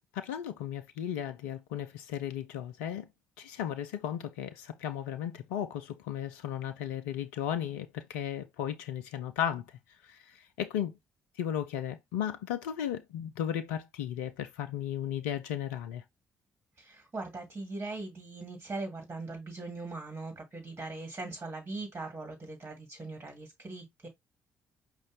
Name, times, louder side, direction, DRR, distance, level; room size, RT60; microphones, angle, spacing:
voice 1, 0.1-3.1 3.4-9.6 10.0-10.9 11.4-16.0, left 10 dB, 75° left, 0.4 m, -35 dB
voice 2, 16.8-24.1, right 3 dB, 25° right, 2.2 m, -40 dB
5.1 x 2.4 x 3.9 m
figure-of-eight pair, 40°, 8 cm